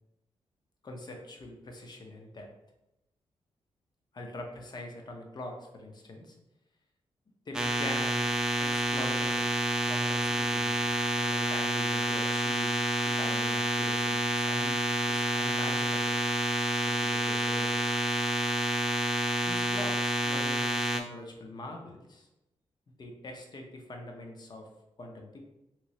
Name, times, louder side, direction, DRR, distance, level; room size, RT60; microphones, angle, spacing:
voice 1, 0.8-2.5 4.1-6.4 7.5-8.3 8.6-9.5 9.9-12.7 13.0-16.2 16.7-17.8 19.4-22.3 23.0-24.7 25.0-25.4, left 1 dB, 40° left, 2 dB, 0.7 m, -43 dB
sound 1, 7.5-21.0, right 1 dB, 5° right, 0.3 m, -29 dB
3.0 x 2.9 x 2.8 m, 0.90 s
cardioid pair, 80°, 11 cm